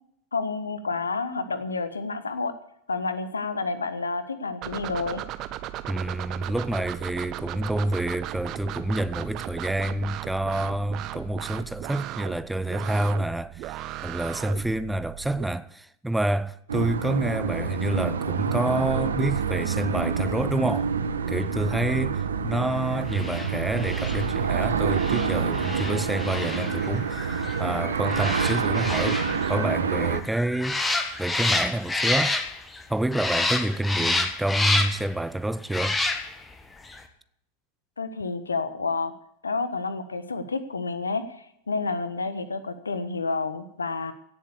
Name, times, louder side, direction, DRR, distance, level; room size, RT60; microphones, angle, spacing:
voice 1, 0.3-2.5 2.9-5.2 38.0-39.1 39.4-44.1, left 4 dB, 75° left, 1.3 m, -29 dB
sound 1, 4.6-15.4, right 13 dB, 35° right, 0.9 m, -36 dB
voice 2, 5.9-20.9 21.3-30.8 31.2-32.4 32.9-36.0, right 1 dB, 5° right, 0.4 m, -28 dB
sound 2, 16.7-30.2, right 6 dB, 70° right, 1.0 m, -27 dB
sound 3, 23.1-32.8 33.1-35.1 35.7-36.5 36.9-37.0, left 2 dB, 10° left, 1.5 m, -29 dB
17.0 x 7.3 x 8.3 m
figure-of-eight pair, 90°, 0 cm